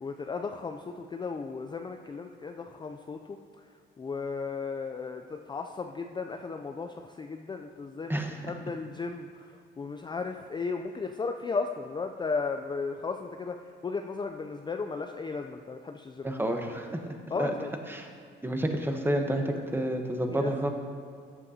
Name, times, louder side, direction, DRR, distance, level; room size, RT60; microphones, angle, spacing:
voice 1, 0.0-3.7 4.0-16.3 17.3-17.7 19.4-19.6 20.3-20.5, left 4 dB, 20° left, 5 dB, 0.4 m, -35 dB
voice 2, 16.2-17.0 17.4-17.5 17.9-18.1 18.4-20.7, right 1 dB, 10° right, 4 dB, 1.0 m, -29 dB
14.0 x 8.3 x 2.8 m, 2.1 s
cardioid pair, 90°, 20 cm